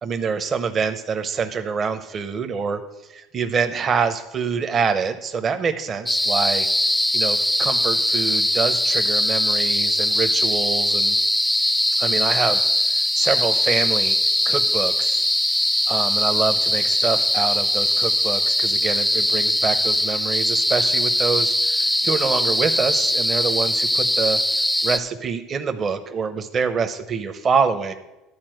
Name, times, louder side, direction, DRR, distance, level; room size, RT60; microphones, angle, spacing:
voice 1, 0.0-6.7 7.1-11.2 12.0-14.2 14.4-15.3 15.9-24.4 24.8-27.9, right 5 dB, 40° right, 7 dB, 0.8 m, -26 dB
sound 1, 6.1-25.0, left 1 dB, 5° left, 0.4 m, -21 dB
11.5 x 4.3 x 7.7 m, 1.0 s
hypercardioid pair, 85°, 0 cm